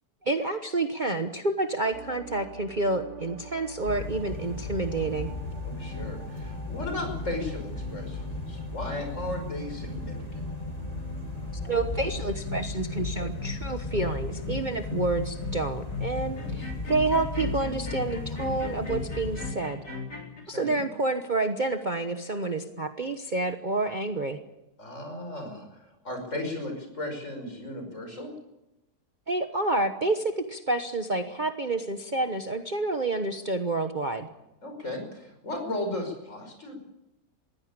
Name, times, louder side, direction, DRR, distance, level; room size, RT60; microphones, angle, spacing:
voice 1, 0.2-5.3 11.6-19.8 20.5-24.4 29.3-34.3, right 2 dB, 30° right, 5 dB, 1.1 m, -29 dB
sound 1, 1.9-12.4, right 5 dB, 50° right, 1.4 m, -45 dB
sound 2, 3.9-19.5, left 3 dB, 25° left, 1.9 m, -36 dB
voice 2, 5.6-10.4 16.2-16.9 20.5-20.9 24.8-28.3 34.6-36.8, left 1 dB, 45° left, 4 dB, 6.0 m, -36 dB
sound 3, 12.4-20.4, left 4 dB, 65° left, 5.3 m, -37 dB
22.0 x 16.0 x 8.8 m, 0.91 s
omnidirectional pair, 1.7 m